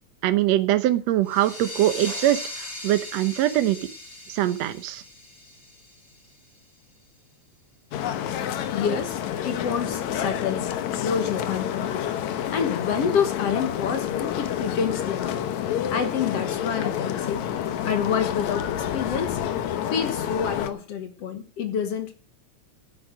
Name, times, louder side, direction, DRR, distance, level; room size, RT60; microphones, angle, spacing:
voice 1, 0.2-3.8 4.3-5.0, right 13 dB, 70° right, 11 dB, 2.0 m, -23 dB
sound 1, 1.2-6.6, left 1 dB, 35° left, 4.6 m, -38 dB
sound 2, 7.9-20.7, left 10 dB, 75° left, 2.4 m, -29 dB
voice 2, 8.7-9.2 9.4-12.1 12.5-15.4 15.9-17.5 17.8-19.4 19.8-22.1, left 7 dB, 60° left, 7 dB, 2.3 m, -28 dB
11.0 x 9.2 x 6.3 m, 0.39 s
omnidirectional pair, 3.4 m